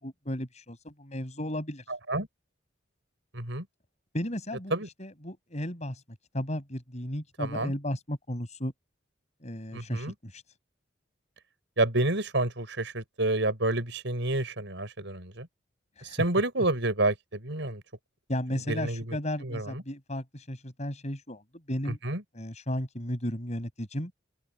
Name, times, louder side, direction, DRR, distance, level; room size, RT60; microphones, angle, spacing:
voice 1, 0.0-1.8 4.1-6.0 6.3-8.7 9.4-10.4 16.0-16.2 18.3-21.4 21.7-22.0 22.3-24.1, equal, 35° left, 6.6 m, -34 dB
voice 2, 3.3-3.6 4.7-4.9 7.4-7.7 9.7-10.1 11.8-15.5 16.0-17.8 18.7-19.0 19.4-19.7 22.0-22.2, right 2 dB, 70° right, 6.3 m, -29 dB
open air
head